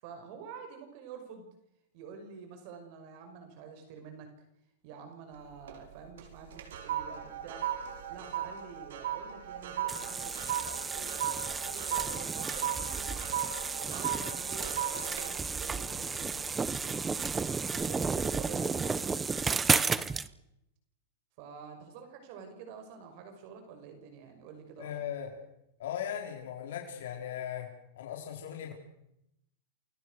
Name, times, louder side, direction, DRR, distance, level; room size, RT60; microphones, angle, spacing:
voice 1, 0.0-1.4 1.9-4.3 4.8-7.7 8.1-11.1 11.4-13.1 13.9-17.0 17.7-20.1 21.4-25.0, right 6 dB, 45° right, 6 dB, 5.9 m, -48 dB
sound 1, 5.3-5.9 6.2-16.7 17.2-17.5, right 10 dB, 85° right, 5.9 m, -37 dB
sound 2, 9.9-20.3, right 4 dB, 10° right, 0.9 m, -32 dB
voice 2, 24.8-25.4 25.8-27.7 28.0-28.7, left 9 dB, 80° left, 1 dB, 4.9 m, -38 dB
29.0 x 22.5 x 6.5 m, 0.81 s
supercardioid pair, 155°, 0 cm